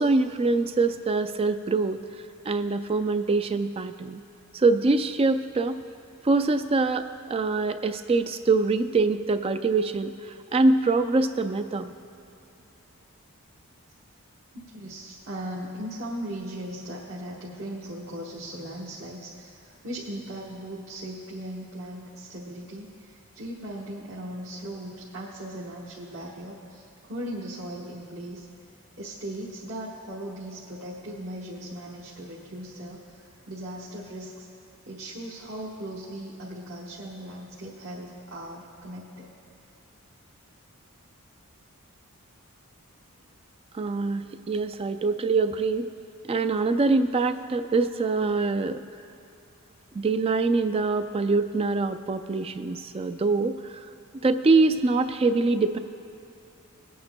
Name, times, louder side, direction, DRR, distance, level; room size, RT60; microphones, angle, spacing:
voice 1, 0.0-2.0 2.5-4.2 4.5-5.8 6.2-10.1 10.5-11.9 43.7-45.9 46.3-48.8 49.9-53.8 54.1-55.8, right 3 dB, 25° right, 10 dB, 0.3 m, -24 dB
voice 2, 14.5-28.5 29.0-34.5 34.8-39.3, right 1 dB, 60° right, -6 dB, 1.2 m, -38 dB
22.5 x 8.6 x 2.2 m, 2.7 s
head